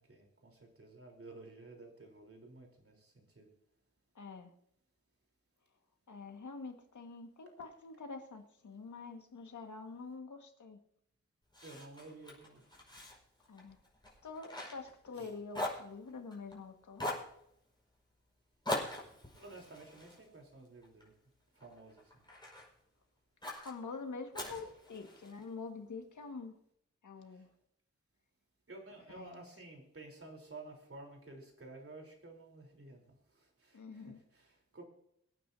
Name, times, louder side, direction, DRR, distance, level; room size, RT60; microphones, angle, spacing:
voice 1, 0.0-3.5 11.6-12.6 15.1-15.3 19.3-21.1 21.6-22.1 28.7-33.0 33.6-34.8, right 2 dB, 50° right, 3.7 m, -52 dB
voice 2, 4.1-4.5 6.1-10.8 13.5-13.8 14.2-17.1 23.6-26.5 27.0-27.5 29.1-29.4 33.7-34.2, left 4 dB, 85° left, 1.7 m, -46 dB
Fire, 11.5-15.2 15.5-16.6 17.0-17.3 18.6-21.1 21.6-22.7 23.4-23.7 24.3-25.4, left 1 dB, 15° left, 5.1 m, -42 dB
24.0 x 9.3 x 2.7 m
wide cardioid pair, 100°, 30 cm